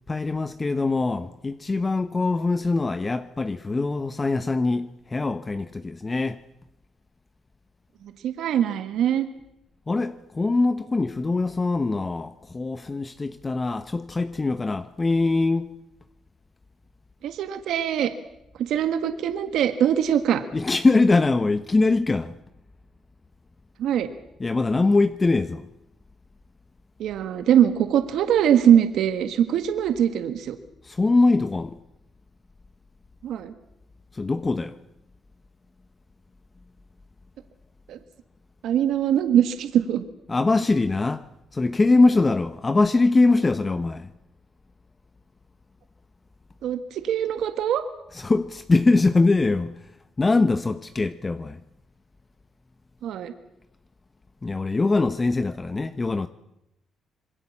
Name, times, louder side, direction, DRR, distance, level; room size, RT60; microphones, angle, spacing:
voice 1, 0.1-6.4 9.9-15.7 20.5-22.3 24.4-25.6 30.8-31.7 34.1-34.8 40.3-41.2 41.5-44.1 48.1-49.7 50.2-51.6 54.4-56.3, left 3 dB, 25° left, 1.0 m, -22 dB
voice 2, 8.2-9.3 17.2-18.1 18.6-20.4 23.8-24.1 27.0-30.5 33.2-33.5 37.9-38.0 38.6-40.0 46.6-47.8 53.0-53.3, right 9 dB, 80° right, 1.7 m, -22 dB
26.5 x 21.5 x 7.3 m
cardioid pair, 90°, 0 cm